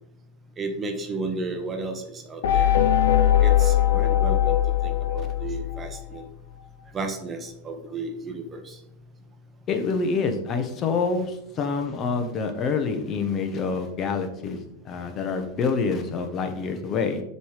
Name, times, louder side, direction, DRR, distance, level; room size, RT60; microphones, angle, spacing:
voice 1, 0.6-2.8 3.4-4.6 4.8-6.3 6.9-8.8, right 3 dB, 20° right, 6 dB, 0.9 m, -33 dB
sound 1, 2.4-6.2, left 11 dB, 80° left, 0.5 m, -21 dB
voice 2, 9.7-17.2, left 4 dB, 35° left, 6 dB, 0.8 m, -27 dB
6.9 x 3.1 x 4.9 m, 0.77 s
supercardioid pair, 135°, 0 cm